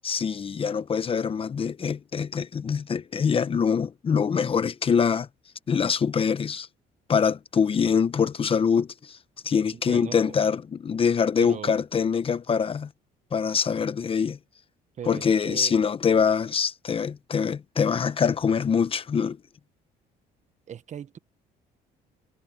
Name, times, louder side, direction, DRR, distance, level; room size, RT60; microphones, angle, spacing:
voice 1, 0.0-5.3 5.7-6.7 7.1-9.2 9.4-12.9 13.3-14.4 15.1-19.4, left 6 dB, 35° left, 0.9 m, -24 dB
voice 2, 9.7-10.4 11.4-11.8 15.0-15.7 20.7-21.2, right 8 dB, 45° right, 1.3 m, -38 dB
cardioid pair, 110°, 17 cm